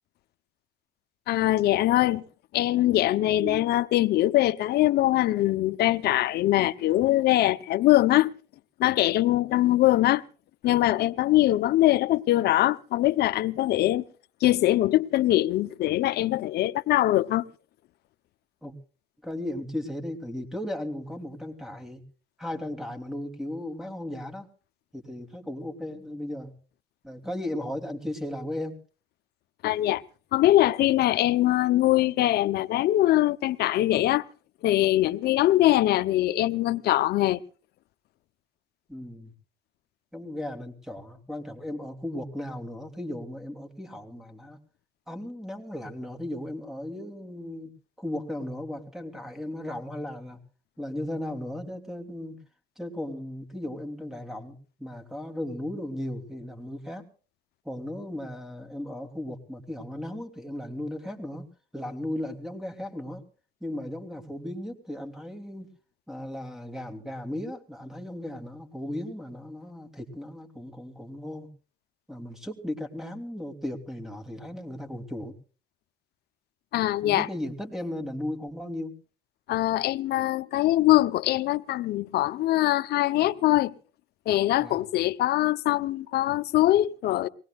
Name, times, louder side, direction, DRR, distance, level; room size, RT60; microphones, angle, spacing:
voice 1, 1.3-2.2 2.5-8.3 8.8-10.2 10.6-14.0 14.4-17.5 29.6-30.0 30.3-34.2 34.6-37.4 76.7-77.3 79.5-83.7 84.3-87.3, left 15 dB, 75° left, 0.8 m, -22 dB
voice 2, 19.2-22.0 22.4-24.5 24.9-26.5 27.0-28.8 38.9-39.3 40.1-44.6 45.1-47.7 48.0-50.4 50.8-52.4 52.8-57.1 57.6-63.2 63.6-65.7 66.1-71.5 72.1-75.4 77.0-78.9 84.6-84.8, left 1 dB, ahead, 3.1 m, -36 dB
23.5 x 19.0 x 2.4 m
cardioid pair, 110°, 17 cm